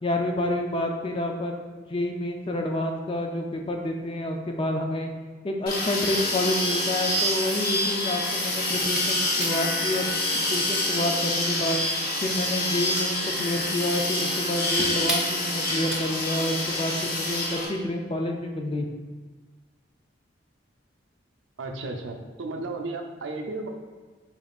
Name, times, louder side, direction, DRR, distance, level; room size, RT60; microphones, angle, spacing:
voice 1, 0.0-5.1 5.4-11.8 12.2-18.9, left 1 dB, 30° left, 2 dB, 0.4 m, -29 dB
sound 1, 5.7-17.7, left 1 dB, 55° left, 0.8 m, -27 dB
sound 2, 8.6-16.4, right 1 dB, 5° right, 0.7 m, -37 dB
voice 2, 21.6-23.7, right 3 dB, 80° right, 4 dB, 0.5 m, -34 dB
4.6 x 3.7 x 2.4 m, 1.4 s
head